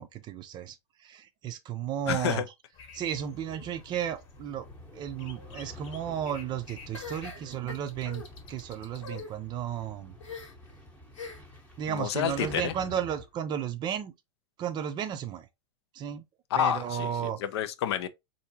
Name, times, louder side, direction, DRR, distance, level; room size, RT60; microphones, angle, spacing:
voice 1, 0.0-2.5 2.9-4.7 4.9-10.2 11.8-14.1 14.6-15.5 15.9-16.2 16.5-17.4, right 9 dB, 25° right, 0.5 m, -34 dB
voice 2, 2.1-2.4 11.9-12.7 16.5-18.1, left 10 dB, 55° left, 0.5 m, -29 dB
sound 1, 2.7-9.2, left 6 dB, 40° left, 1.1 m, -52 dB
sound 2, 3.0-13.3, left 1 dB, 10° left, 0.9 m, -49 dB
sound 3, 6.9-8.3 8.9-9.3 10.2-10.7 11.1-11.6 12.3-12.8, left 5 dB, 70° left, 1.2 m, -43 dB
4.3 x 2.7 x 2.7 m
figure-of-eight pair, 95°, 16 cm